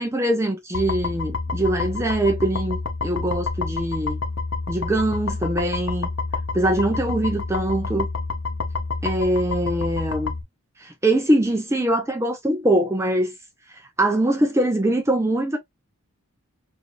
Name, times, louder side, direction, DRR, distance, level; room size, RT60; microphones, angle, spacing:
voice 1, 0.0-4.2 4.7-6.1 6.5-8.1 9.0-10.3 10.8-13.3 13.7-15.6, right 1 dB, 10° right, 0.4 m, -23 dB
sound 1, 0.7-10.4, left 3 dB, 60° left, 0.7 m, -28 dB
4.9 x 2.6 x 2.5 m
head